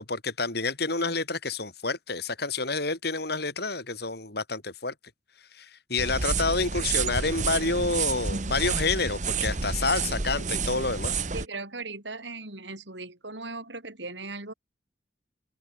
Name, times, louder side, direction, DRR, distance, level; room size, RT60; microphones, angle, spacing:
voice 1, 0.0-4.9 5.5-11.2, left 3 dB, 60° left, 7.7 m, -29 dB
sound 1, 6.0-11.5, right 5 dB, 45° right, 1.4 m, -29 dB
voice 2, 11.3-14.5, right 3 dB, 75° right, 7.4 m, -38 dB
open air
head